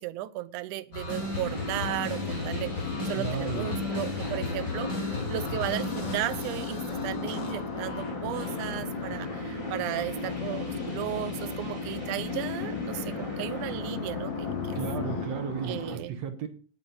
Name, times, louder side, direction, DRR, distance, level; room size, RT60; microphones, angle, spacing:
voice 1, 0.0-14.8 15.6-16.2, right 15 dB, 75° right, 14 dB, 2.0 m, -35 dB
sound 1, 0.9-9.0, left 2 dB, 30° left, 5.7 m, -36 dB
sound 2, 1.0-15.9, equal, 10° right, 3.6 m, -37 dB
sound 3, 1.2-15.3, left 12 dB, 70° left, 1.8 m, -38 dB
voice 2, 3.1-3.8 14.7-16.5, right 7 dB, 60° right, 8 dB, 2.1 m, -34 dB
18.5 x 6.2 x 5.5 m, 0.40 s
omnidirectional pair, 4.0 m